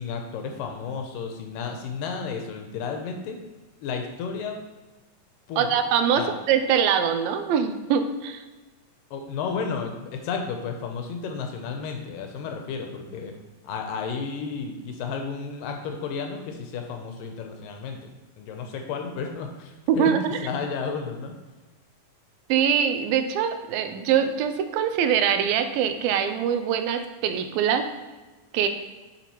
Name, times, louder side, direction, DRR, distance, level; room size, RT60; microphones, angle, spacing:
voice 1, 0.0-3.4 3.8-4.6 5.5-5.7 6.1-6.4 9.1-13.3 13.6-18.0 18.4-20.2 20.4-21.3, left 5 dB, 80° left, 3 dB, 2.2 m, -32 dB
voice 2, 5.6-8.4 19.9-20.4 22.5-27.9 28.5-28.7, right 8 dB, 85° right, 8 dB, 2.4 m, -23 dB
7.1 x 5.8 x 3.0 m, 1.2 s
omnidirectional pair, 4.1 m